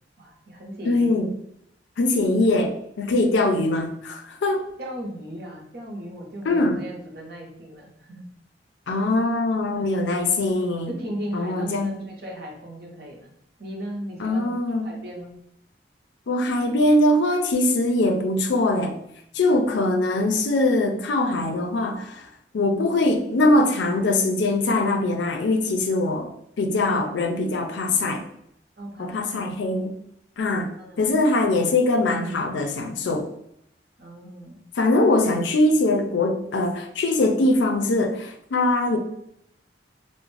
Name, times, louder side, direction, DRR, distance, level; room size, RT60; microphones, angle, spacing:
voice 1, 0.2-1.1 4.8-8.3 9.7-9.9 10.9-14.5 14.8-15.3 26.9-27.1 28.8-29.6 30.8-31.1 34.0-34.6, equal, 60° right, 0 dB, 0.7 m, -37 dB
voice 2, 0.9-1.3 2.0-4.6 6.5-6.8 8.9-10.9 11.3-12.0 14.2-14.9 16.3-19.0 19.3-22.3 22.5-26.3 26.6-28.2 29.0-29.9 30.4-30.7 31.0-33.3 34.8-39.0, left 2 dB, 90° left, 5 dB, 0.4 m, -22 dB
2.5 x 2.0 x 3.1 m, 0.74 s
head